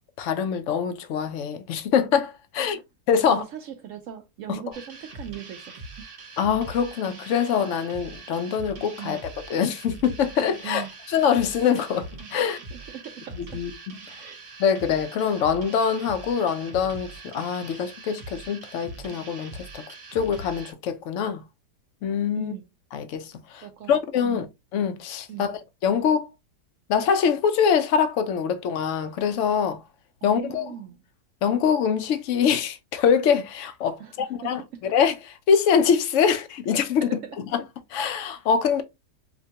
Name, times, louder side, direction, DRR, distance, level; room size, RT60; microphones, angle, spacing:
voice 1, 0.2-2.8 3.1-3.4 4.5-4.6 6.4-12.6 13.5-13.7 14.6-19.8 20.1-21.4 22.0-22.5 22.9-24.5 24.7-26.3 26.9-29.8 30.2-30.7 31.4-37.1 37.5-37.6 37.9-38.8, left 7 dB, 65° left, 0.8 m, -24 dB
voice 2, 3.2-6.1 9.0-9.3 10.6-10.9 12.7-13.6 14.2-14.6 22.4-22.7 23.6-24.0 24.2-24.4 25.3-25.5 30.3-31.0 34.0-34.5 37.0-37.4, right 9 dB, 70° right, 0.7 m, -39 dB
sound 1, 4.7-20.7, right 3 dB, 50° right, 1.1 m, -42 dB
5.0 x 2.2 x 2.7 m
omnidirectional pair, 1.8 m